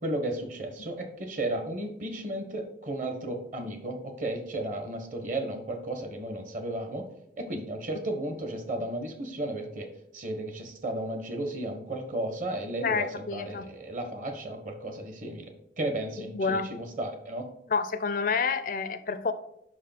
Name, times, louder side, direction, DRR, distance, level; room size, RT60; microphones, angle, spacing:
voice 1, 0.0-7.1 7.4-9.9 10.1-17.5, right 1 dB, 45° right, 6 dB, 1.1 m, -34 dB
voice 2, 12.8-13.7 16.3-16.7 17.7-19.3, left 5 dB, 45° left, 12 dB, 0.4 m, -28 dB
5.5 x 4.7 x 5.8 m, 0.76 s
head